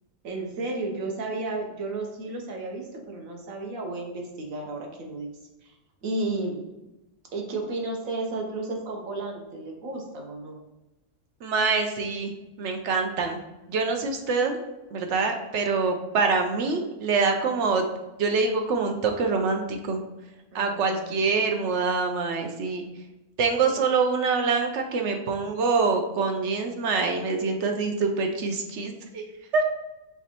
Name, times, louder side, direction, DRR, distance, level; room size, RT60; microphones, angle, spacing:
voice 1, 0.2-5.3 5.6-5.7 6.0-6.6 7.3-10.6 20.5-21.2, right 2 dB, 90° right, 2 dB, 1.3 m, -33 dB
voice 2, 11.4-12.3 12.6-13.4 13.7-14.6 14.9-17.8 18.2-20.0 20.5-22.8 23.4-29.2 29.5-29.6, right 4 dB, 65° right, 4 dB, 0.9 m, -25 dB
4.6 x 3.4 x 2.9 m, 1.0 s
omnidirectional pair, 1.4 m